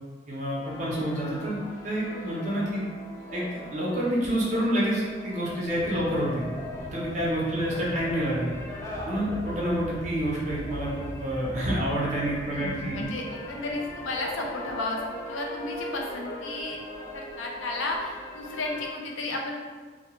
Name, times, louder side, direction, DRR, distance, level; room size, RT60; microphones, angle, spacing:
voice 1, 0.3-1.6 1.8-2.8 3.3-6.4 6.9-8.5 9.0-13.0, equal, 40° right, -5 dB, 0.6 m, -28 dB
sound 1, 0.6-18.9, left 1 dB, 15° left, 0.3 m, -41 dB
Aircraft, 5.7-15.1, right 1 dB, 65° left, 1.1 m, -42 dB
voice 2, 12.5-16.8 17.1-19.6, left 2 dB, 90° left, 1 dB, 0.4 m, -33 dB
2.2 x 2.2 x 2.9 m, 1.5 s
head